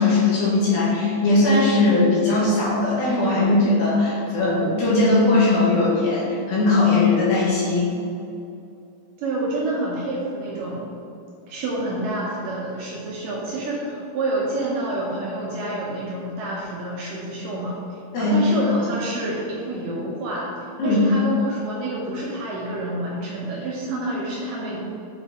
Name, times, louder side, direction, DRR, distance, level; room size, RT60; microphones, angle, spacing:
voice 1, 0.0-7.9 18.1-18.4 20.8-21.0, left 2 dB, 65° left, -8 dB, 3.2 m, -19 dB
voice 2, 9.2-10.9 11.5-24.8, right 2 dB, 75° right, -5 dB, 2.2 m, -28 dB
8.0 x 3.9 x 4.2 m, 2.6 s
omnidirectional pair, 4.6 m